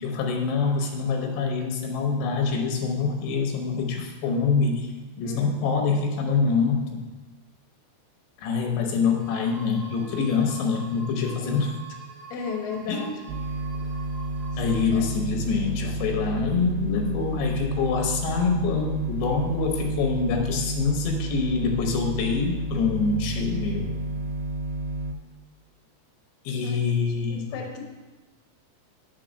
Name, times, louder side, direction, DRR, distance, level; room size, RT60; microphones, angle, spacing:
voice 1, 0.0-4.9 5.2-7.0 8.4-11.7 12.9-13.1 14.6-23.9 26.5-27.5, left 5 dB, 85° left, 3 dB, 3.1 m, -25 dB
voice 2, 5.2-5.8 11.4-11.7 12.3-13.3 14.5-14.6 26.6-27.8, left 5 dB, 70° left, 1 dB, 2.3 m, -36 dB
sound 1, 9.2-15.0, right 4 dB, 55° right, 1.4 m, -45 dB
sound 2, 13.3-25.1, right 1 dB, 85° right, 2.8 m, -31 dB
6.0 x 4.6 x 6.3 m, 1.2 s
omnidirectional pair, 4.9 m